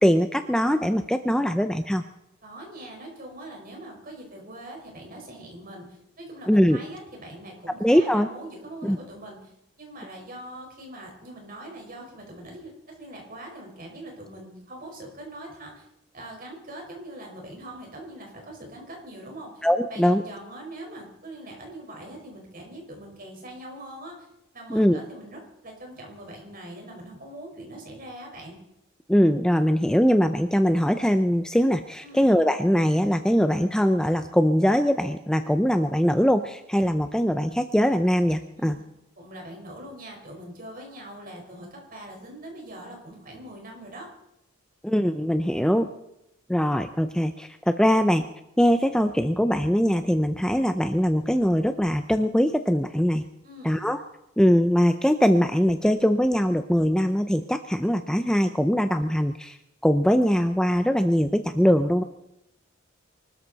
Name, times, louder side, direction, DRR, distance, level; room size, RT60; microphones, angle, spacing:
voice 1, 0.0-2.0 6.5-6.8 7.8-8.3 8.8-9.0 19.6-20.2 24.7-25.0 29.1-38.8 44.8-45.9 46.5-48.2 48.6-53.2 53.6-54.0 54.4-59.6 59.8-62.0, equal, 5° left, 8 dB, 0.5 m, -22 dB
voice 2, 2.4-9.5 9.8-15.9 16.1-19.6 19.9-24.3 24.5-28.6 32.0-32.3 38.6-38.7 39.2-44.1 53.4-53.8, right 1 dB, 45° right, 1 dB, 4.7 m, -42 dB
24.5 x 13.0 x 4.1 m, 0.85 s
head